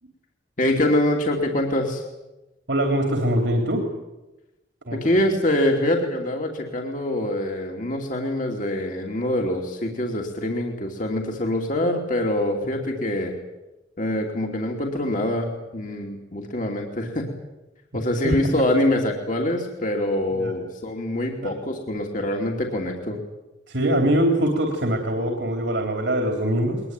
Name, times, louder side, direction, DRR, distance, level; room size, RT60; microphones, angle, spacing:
voice 1, 0.6-2.0 4.9-13.4 14.0-17.3 17.9-23.2, left 1 dB, 45° left, 1 dB, 2.8 m, -24 dB
voice 2, 2.7-3.8 4.9-5.2 12.9-13.0 18.2-18.5 20.3-20.5 21.4-21.5 23.7-26.8, right 1 dB, 80° right, 3 dB, 3.4 m, -23 dB
22.0 x 21.0 x 9.1 m, 1.0 s
head